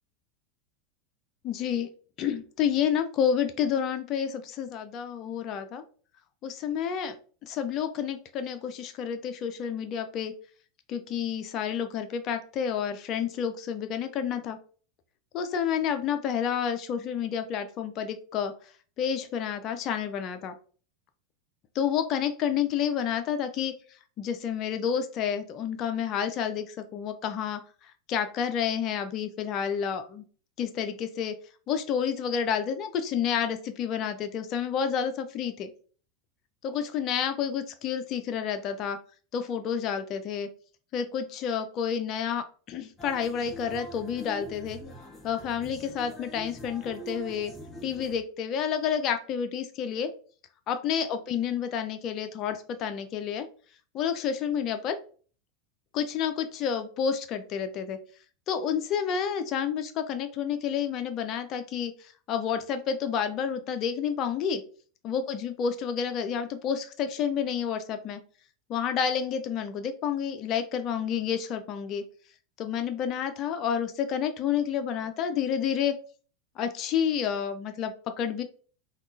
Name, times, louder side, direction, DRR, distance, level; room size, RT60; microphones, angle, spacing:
voice 1, 1.4-1.9 2.2-5.8 6.4-7.2 7.4-10.3 10.9-14.6 15.3-18.5 19.0-20.5 21.7-23.7 24.2-27.6 28.1-30.2 30.6-31.4 31.7-35.7 36.6-39.0 39.3-40.5 40.9-44.8 45.2-47.5 47.8-50.1 50.7-53.5 53.9-55.0 55.9-58.0 58.5-64.6 65.0-68.2 68.7-72.0 72.6-76.0 76.6-78.4, left 8 dB, 40° left, 8 dB, 0.4 m, -29 dB
sound 1, 43.0-48.2, equal, 15° left, 1.0 m, -43 dB
3.5 x 2.3 x 2.5 m, 0.41 s
figure-of-eight pair, 85°, 0 cm